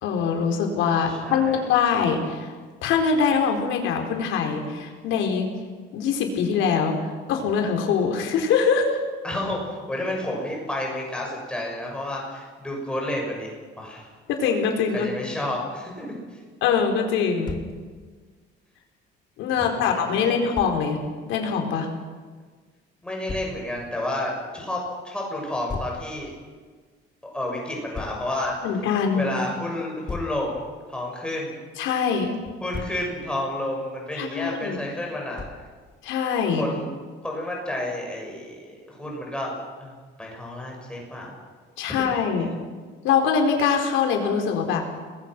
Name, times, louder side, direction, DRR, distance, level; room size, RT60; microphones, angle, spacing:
voice 1, 0.0-2.5 2.8-5.5 5.9-9.0 14.3-15.1 16.6-17.6 19.4-21.0 21.3-21.9 28.6-29.3 31.8-32.3 34.2-34.8 36.0-36.6 41.8-42.5 43.0-44.8, left 6 dB, 90° left, 3 dB, 4.6 m, -23 dB
voice 2, 1.0-1.6 9.2-13.5 13.8-14.1 14.9-16.4 19.7-20.4 23.0-26.3 27.2-28.5 29.1-30.6 30.9-31.6 32.6-35.4 36.5-36.9 37.2-39.9 40.2-41.3 41.9-42.0, left 1 dB, 5° left, -1 dB, 6.4 m, -30 dB
Thump thud, 17.4-17.8 20.5-20.8 23.3-23.6 25.7-26.0 27.9-28.2 30.1-30.4 32.4-33.0 35.4-35.7, left 4 dB, 20° left, 2.1 m, -34 dB
30.0 x 21.0 x 6.2 m, 1.5 s
cardioid pair, 170°, 19 cm